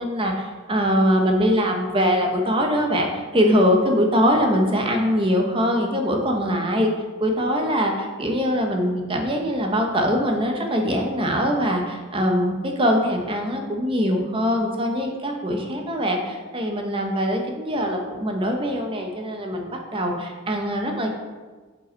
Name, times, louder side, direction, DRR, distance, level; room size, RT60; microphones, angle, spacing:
voice 1, 0.0-6.9 7.2-21.1, equal, 25° right, 2 dB, 0.9 m, -22 dB
7.8 x 5.4 x 4.5 m, 1.4 s
head